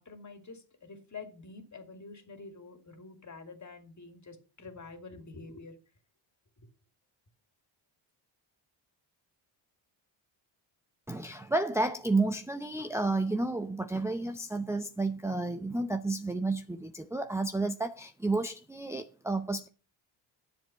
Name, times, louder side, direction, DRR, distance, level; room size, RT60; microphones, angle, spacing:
voice 1, 0.0-5.8 6.6-6.7, left 4 dB, 35° left, 2.5 m, -47 dB
voice 2, 11.1-19.7, right 2 dB, 5° right, 0.6 m, -31 dB
10.5 x 7.4 x 5.7 m
cardioid pair, 85°, 49 cm